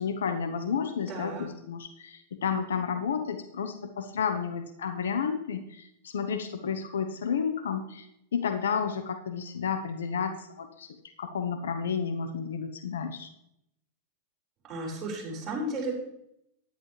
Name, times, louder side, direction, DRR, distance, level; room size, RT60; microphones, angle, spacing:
voice 1, 0.0-8.1 8.3-10.9 11.2-13.3, left 6 dB, 90° left, 8 dB, 0.9 m, -31 dB
voice 2, 1.1-1.5 14.7-15.9, right 1 dB, 30° right, -4 dB, 4.9 m, -34 dB
10.5 x 10.5 x 3.3 m, 0.78 s
hypercardioid pair, 120°, 0 cm